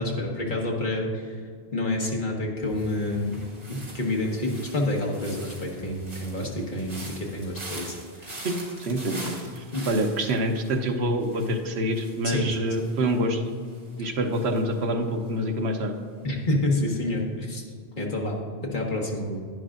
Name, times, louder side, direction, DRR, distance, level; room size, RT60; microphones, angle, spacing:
voice 1, 0.0-1.4 1.7-3.4 3.7-8.0 8.2-8.5 9.7-9.9 12.2-12.7 14.0-14.1 16.2-17.6 18.0-19.4, left 1 dB, 50° left, -1 dB, 1.5 m, -28 dB
sound 1, 2.7-15.7 16.0-16.4, right 1 dB, 60° right, 2.1 m, -44 dB
voice 2, 8.8-13.4 14.0-16.0, right 1 dB, 85° right, 5 dB, 1.1 m, -26 dB
11.0 x 10.0 x 2.5 m, 2.1 s
omnidirectional pair, 1.1 m